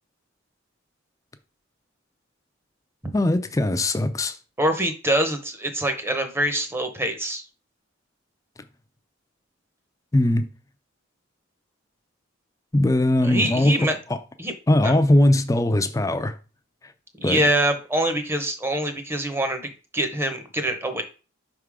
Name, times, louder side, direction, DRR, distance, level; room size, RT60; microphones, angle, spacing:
voice 1, 3.1-4.4 10.1-10.5 12.7-14.2 14.7-16.4 17.2-17.4, left 1 dB, 15° left, 0.4 m, -20 dB
voice 2, 4.6-7.4 13.2-14.0 14.4-14.5 14.8-15.0 17.2-21.0, right 1 dB, 10° right, 0.8 m, -24 dB
5.5 x 3.6 x 4.8 m
head